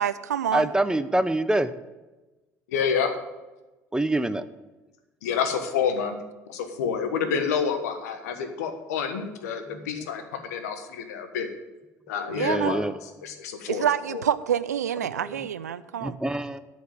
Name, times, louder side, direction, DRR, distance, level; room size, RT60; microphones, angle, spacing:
voice 1, 0.0-0.7 12.3-12.8 13.7-16.2, right 9 dB, 90° right, 0.4 m, -27 dB
voice 2, 0.5-1.7 3.9-4.4 9.7-10.1 12.3-12.9 15.2-15.4 16.0-16.6, right 1 dB, 10° right, 0.8 m, -26 dB
voice 3, 2.7-3.1 5.2-6.2 6.5-11.5 12.1-12.8 13.2-14.2, left 6 dB, 80° left, 1.3 m, -28 dB
12.5 x 5.2 x 7.9 m
hypercardioid pair, 60°, 9 cm